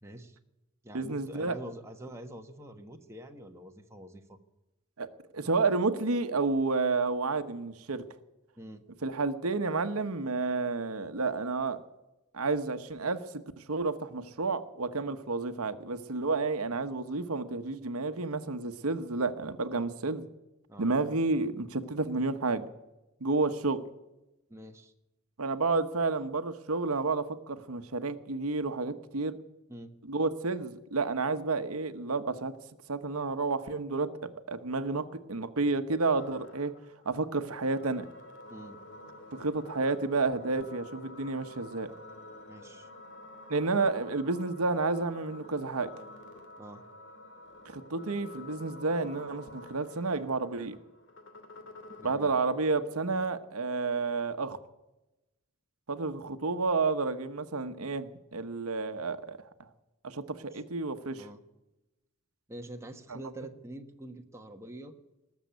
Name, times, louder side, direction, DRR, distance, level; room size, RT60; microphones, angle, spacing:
voice 1, 0.0-0.4 0.8-4.4 8.6-8.9 19.7-19.8 20.7-20.9 24.5-24.9 29.7-29.9 38.5-38.8 42.5-42.9 46.6-46.9 52.0-52.3 60.5-60.6 61.2-61.4 62.5-64.9, right 1 dB, 10° right, 4 dB, 1.2 m, -45 dB
voice 2, 0.9-1.6 5.0-5.1 5.3-8.0 9.0-11.8 12.3-20.3 20.8-22.7 23.2-23.8 25.4-29.4 30.0-32.5 32.9-36.7 37.0-38.1 39.4-41.9 43.5-45.9 47.6-50.8 52.0-54.6 55.9-59.7 60.0-61.3 63.1-63.2, right 3 dB, 85° right, 10 dB, 1.1 m, -30 dB
sound 1, 36.2-52.2, left 1 dB, 55° left, 2.5 m, -49 dB
19.5 x 7.4 x 9.4 m, 0.98 s
head